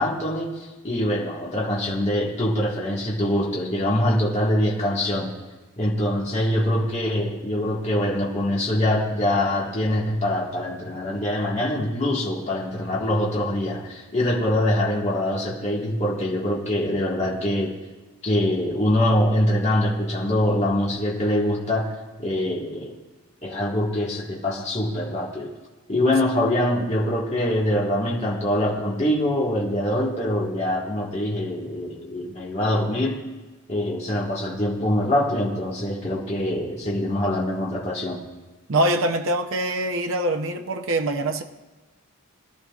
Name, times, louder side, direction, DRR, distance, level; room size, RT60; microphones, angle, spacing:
voice 1, 0.0-5.3 5.8-17.8 18.2-21.9 22.2-22.9 23.4-25.5 25.9-33.2 33.7-38.2, left 1 dB, 30° left, -4 dB, 1.6 m, -24 dB
voice 2, 38.7-41.4, right 1 dB, 65° right, 4 dB, 0.7 m, -24 dB
21.0 x 12.5 x 2.4 m, 1.2 s
head